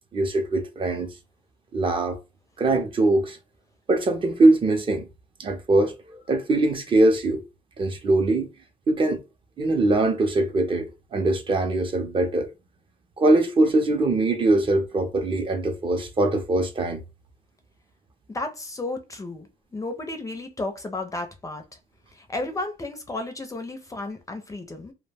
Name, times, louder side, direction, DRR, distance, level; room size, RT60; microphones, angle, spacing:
voice 1, 0.1-1.1 1.7-2.2 2.6-3.4 3.9-5.1 5.4-7.4 7.8-8.5 8.9-9.2 9.6-12.5 13.2-17.0, right 2 dB, 30° right, 0.6 m, -22 dB
voice 2, 18.3-21.8 22.1-24.9, left 2 dB, 20° left, 0.5 m, -33 dB
2.2 x 2.1 x 3.3 m
cardioid pair, 110°, 17 cm